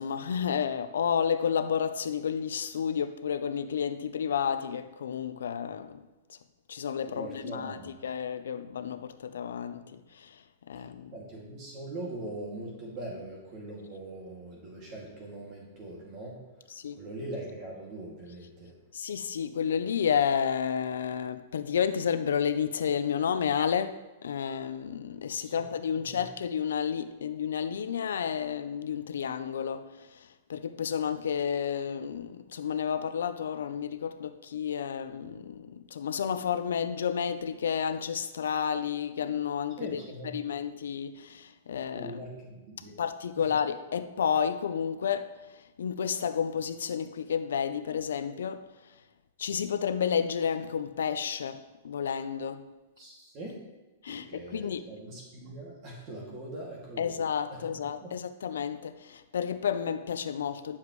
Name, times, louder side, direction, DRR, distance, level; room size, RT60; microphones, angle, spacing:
voice 1, 0.0-6.0 6.3-6.4 6.7-10.4 10.7-11.1 16.8-17.0 18.9-40.0 40.3-42.2 43.0-45.4 45.8-48.7 49.4-52.7 54.0-54.8 57.0-60.8, left 7 dB, 85° left, 0.6 m, -31 dB
voice 2, 7.1-7.9 11.1-18.7 25.4-25.6 26.1-26.2 39.8-40.3 41.9-43.0 43.4-43.5 53.0-53.6 54.1-57.1 57.5-58.1, right 1 dB, 35° right, 2.4 m, -42 dB
11.5 x 7.2 x 3.2 m
hypercardioid pair, 150°, 0 cm